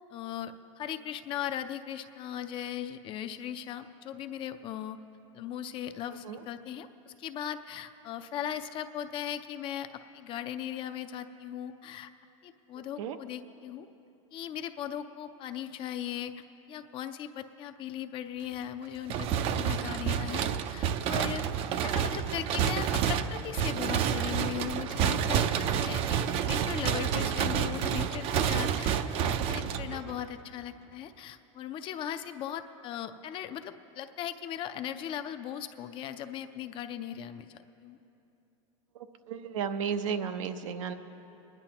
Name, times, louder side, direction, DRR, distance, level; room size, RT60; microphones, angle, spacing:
voice 1, 0.1-5.0 5.3-9.9 10.1-12.1 12.4-13.9 14.3-21.4 21.8-38.0, left 10 dB, 30° left, 9 dB, 0.4 m, -38 dB
sound 1, 19.1-30.3, right 8 dB, 35° right, 0.4 m, -29 dB
voice 2, 38.9-40.9, right 7 dB, 85° right, 8 dB, 0.8 m, -34 dB
24.0 x 10.5 x 2.9 m, 2.9 s
supercardioid pair, 140°, 16 cm